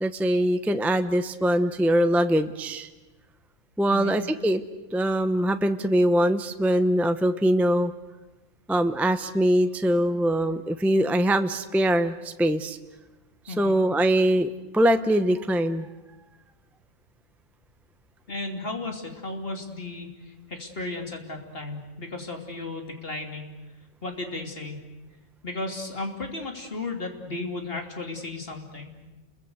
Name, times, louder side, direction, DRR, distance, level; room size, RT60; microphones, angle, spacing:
voice 1, 0.0-2.9 3.8-4.6 4.9-7.9 8.7-12.8 13.5-15.9, right 1 dB, ahead, 9 dB, 0.7 m, -23 dB
voice 2, 13.5-13.8 18.3-23.5 24.0-24.8 25.4-28.9, left 2 dB, 50° left, 3 dB, 3.3 m, -34 dB
29.5 x 22.0 x 8.1 m, 1.1 s
omnidirectional pair, 1.3 m